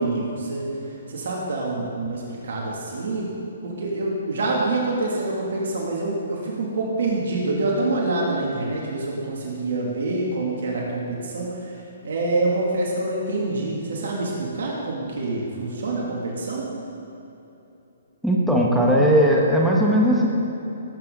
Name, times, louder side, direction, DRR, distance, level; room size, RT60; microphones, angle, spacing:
voice 1, 0.0-3.3 3.6-11.8 12.0-16.7, right 2 dB, 70° right, -3 dB, 2.9 m, -26 dB
voice 2, 18.2-20.3, equal, ahead, -4 dB, 1.7 m, -18 dB
18.5 x 8.9 x 4.1 m, 2.9 s
hypercardioid pair, 145°, 0 cm